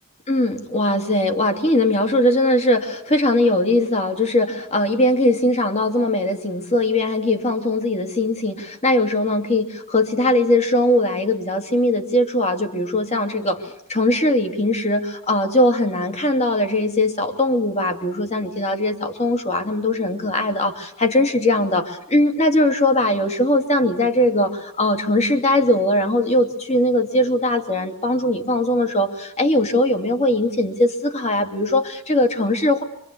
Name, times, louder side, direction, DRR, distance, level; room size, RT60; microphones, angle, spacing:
voice 1, 0.3-32.8, left 1 dB, 30° left, 6 dB, 2.6 m, -20 dB
25.5 x 25.0 x 8.6 m, 0.71 s
head